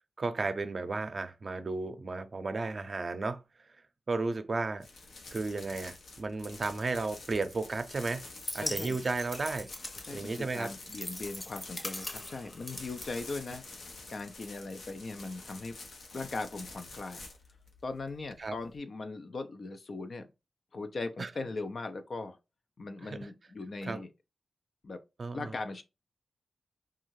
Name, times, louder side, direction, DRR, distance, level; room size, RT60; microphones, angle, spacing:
voice 1, 0.2-3.4 4.1-4.8 5.3-8.3 8.5-9.7 10.1-10.7 18.4-18.5 21.2-21.3 23.0-23.2 23.8-24.0 25.2-25.5, right 3 dB, 55° right, 0.5 m, -33 dB
sound 1, 4.8-18.8, left 3 dB, 85° left, 0.7 m, -49 dB
sound 2, 8.2-13.9, left 1 dB, 25° left, 0.8 m, -42 dB
voice 2, 8.6-9.0 10.1-13.6 14.1-15.7 16.1-17.2 17.8-20.3 20.7-22.4 22.8-24.1 24.8-25.0 25.3-25.8, left 3 dB, 60° left, 0.4 m, -39 dB
2.6 x 2.3 x 3.0 m
cardioid pair, 55°, 0 cm